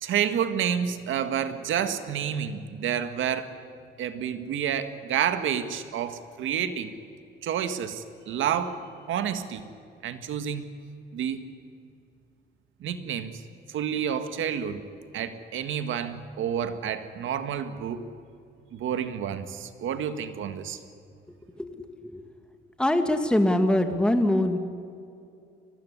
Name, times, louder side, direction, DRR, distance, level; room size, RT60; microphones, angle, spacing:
voice 1, 0.0-3.5 4.0-6.9 7.4-8.8 9.1-9.6 10.0-10.7 11.1-11.4 12.8-13.3 13.7-14.8 15.1-18.1 18.7-20.8, right 8 dB, 80° right, 10 dB, 1.8 m, -29 dB
voice 2, 21.6-22.3 22.8-24.6, left 1 dB, 5° left, 6 dB, 1.9 m, -23 dB
23.5 x 19.0 x 9.8 m, 2.5 s
cardioid pair, 90°, 20 cm